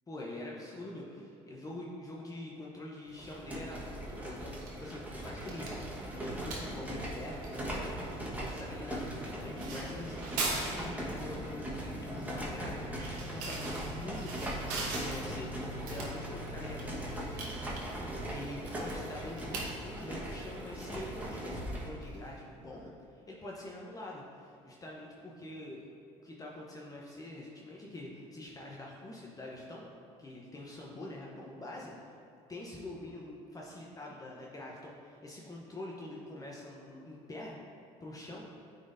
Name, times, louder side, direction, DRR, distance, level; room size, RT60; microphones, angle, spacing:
voice 1, 0.1-5.7 6.2-15.5 15.8-25.9 26.2-29.9 30.2-32.1 32.5-37.6 38.0-38.5, left 1 dB, 25° left, -3 dB, 0.9 m, -45 dB
sound 1, 3.1-22.0, right 1 dB, 10° right, 1.3 m, -40 dB
sound 2, 4.6-22.8, right 3 dB, 75° right, 1.2 m, -43 dB
sound 3, 9.2-17.3, left 1 dB, 60° left, 0.9 m, -46 dB
9.2 x 4.1 x 2.6 m, 2.7 s
supercardioid pair, 80°, 14 cm